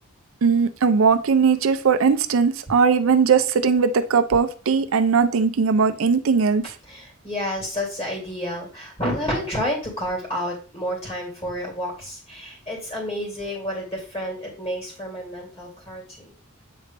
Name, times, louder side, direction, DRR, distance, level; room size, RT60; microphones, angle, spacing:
voice 1, 0.4-6.6, right 5 dB, 70° right, 10 dB, 0.5 m, -19 dB
voice 2, 6.8-16.3, equal, 25° left, -3 dB, 2.7 m, -30 dB
7.8 x 4.1 x 3.3 m, 0.38 s
head